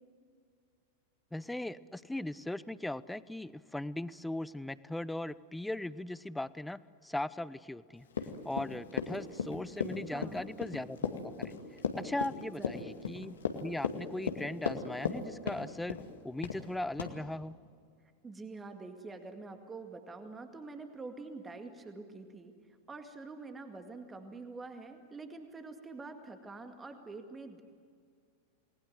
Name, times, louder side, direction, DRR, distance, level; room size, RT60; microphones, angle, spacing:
voice 1, 1.3-8.1 8.4-11.5 12.0-16.0 16.2-17.6, left 1 dB, 5° left, 18 dB, 0.6 m, -38 dB
Run, 8.1-15.2 15.5-16.1 16.4-16.7 17.0-17.1, left 6 dB, 65° left, 2.2 m, -35 dB
voice 2, 10.1-10.5 12.6-12.9 18.2-22.5 22.9-27.6, right 3 dB, 15° right, 6 dB, 2.1 m, -46 dB
29.5 x 20.0 x 7.9 m, 2.1 s
figure-of-eight pair, 90°, 0 cm